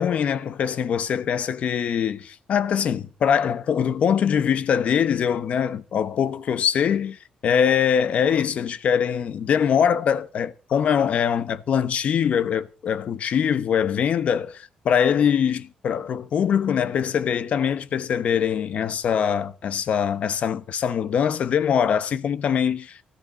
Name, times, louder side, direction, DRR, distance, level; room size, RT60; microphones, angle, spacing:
voice 1, 0.0-23.0, left 8 dB, 60° left, 1.0 m, -23 dB
19.0 x 14.0 x 4.2 m
cardioid pair, 140°, 3 cm